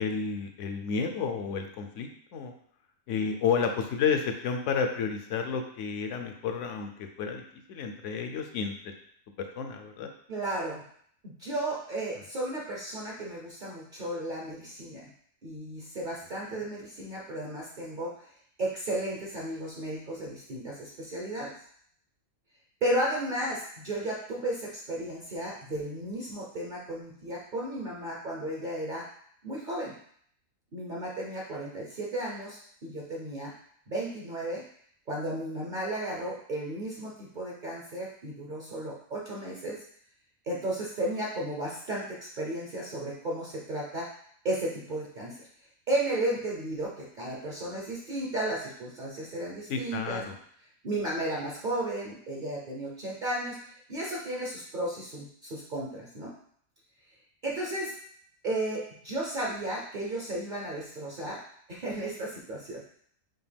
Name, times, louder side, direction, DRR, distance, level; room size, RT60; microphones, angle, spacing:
voice 1, 0.0-2.5 3.1-7.4 7.7-8.9 9.4-10.1 49.7-50.4, left 6 dB, 70° left, 5 dB, 0.9 m, -31 dB
voice 2, 10.3-10.8 11.2-15.1 15.4-18.1 18.6-21.5 22.8-29.1 29.4-29.9 30.7-33.5 33.9-34.6 35.1-39.8 40.5-44.1 44.4-45.5 45.9-50.2 50.8-53.6 53.9-56.3 57.4-57.9 58.4-61.4 61.7-62.8, right 1 dB, 45° right, -3 dB, 0.7 m, -34 dB
5.7 x 2.3 x 3.4 m, 0.62 s
omnidirectional pair, 1.4 m